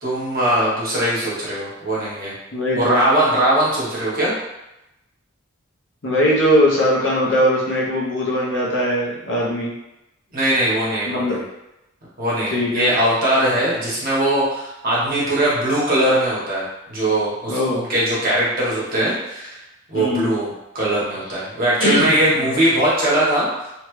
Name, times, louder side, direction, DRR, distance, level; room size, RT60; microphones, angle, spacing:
voice 1, 0.0-2.3 2.7-4.3 10.3-11.4 12.2-16.6 16.9-19.6 19.9-23.5, right 1 dB, 50° right, -8 dB, 1.2 m, -20 dB
voice 2, 2.5-3.0 6.0-9.7 11.1-11.3 12.5-12.9 17.5-17.8 19.9-20.3 21.8-22.1 22.4-22.5, equal, 65° left, -5 dB, 0.8 m, -20 dB
2.9 x 2.3 x 3.1 m, 0.93 s
head